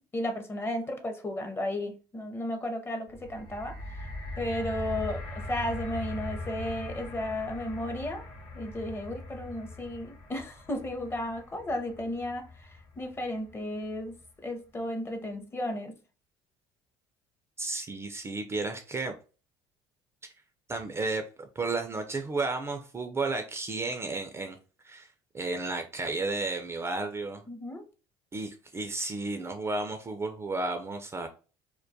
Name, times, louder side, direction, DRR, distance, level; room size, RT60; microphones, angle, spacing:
voice 1, 0.1-8.3 8.5-14.2 14.4-15.9 27.5-27.8, left 1 dB, 20° left, 5 dB, 0.6 m, -34 dB
sound 1, 3.1-13.3 14.1-14.2, left 2 dB, 50° left, 0.9 m, -41 dB
voice 2, 17.6-19.1 20.7-24.6 24.8-25.1 25.3-27.4 28.3-31.3, right 3 dB, 25° right, 5 dB, 0.3 m, -33 dB
2.2 x 2.2 x 2.6 m, 0.36 s
supercardioid pair, 85°, 11 cm